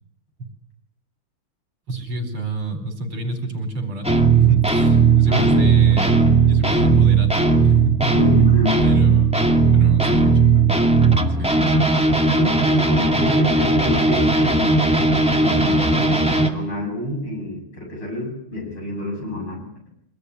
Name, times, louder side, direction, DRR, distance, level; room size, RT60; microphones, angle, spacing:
voice 1, 1.9-4.1 4.4-8.1 8.8-9.3 9.7-10.8 11.4-11.9, right 2 dB, 75° right, 7 dB, 5.6 m, -29 dB
sound 1, 4.0-16.5, right 4 dB, 5° right, 2.0 m, -17 dB
voice 2, 5.2-5.6 8.1-8.8 12.3-15.1 15.3-19.6, left 1 dB, 75° left, 1 dB, 8.6 m, -27 dB
24.5 x 20.0 x 9.9 m, 0.70 s
omnidirectional pair, 2.4 m